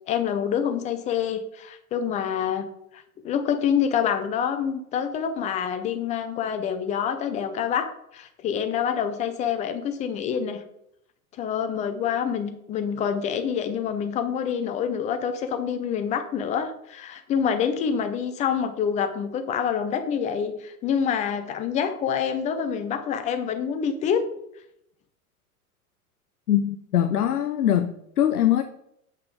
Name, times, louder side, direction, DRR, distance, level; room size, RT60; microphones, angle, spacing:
voice 1, 0.1-10.6 11.4-24.2, left 7 dB, 15° left, 8 dB, 0.5 m, -27 dB
voice 2, 26.5-28.6, left 11 dB, 75° left, 8 dB, 0.6 m, -22 dB
8.2 x 5.6 x 3.8 m, 0.77 s
figure-of-eight pair, 90°, 46 cm